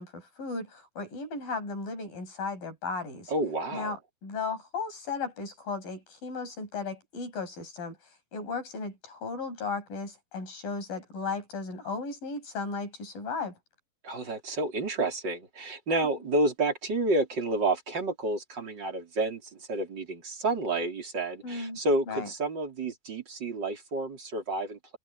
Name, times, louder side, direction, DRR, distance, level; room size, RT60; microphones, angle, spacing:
voice 1, 0.0-3.3 3.7-8.0 8.3-13.6 21.4-21.8 22.1-22.3, left 4 dB, 80° left, 8.9 m, -35 dB
voice 2, 3.3-3.9 14.0-25.0, right 2 dB, 30° right, 4.8 m, -30 dB
omnidirectional pair, 4.0 m